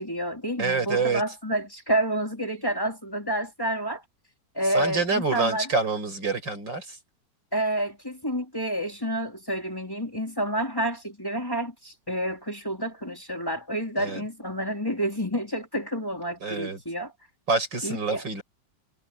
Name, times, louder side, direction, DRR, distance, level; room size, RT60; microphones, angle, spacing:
voice 1, 0.0-4.0 4.5-5.7 7.5-17.1 17.8-18.2, right 1 dB, 10° left, 3.4 m, -29 dB
voice 2, 0.6-1.2 4.7-7.0 14.0-14.2 16.4-16.8 17.5-18.4, right 4 dB, 80° right, 7.0 m, -27 dB
omnidirectional pair, 2.0 m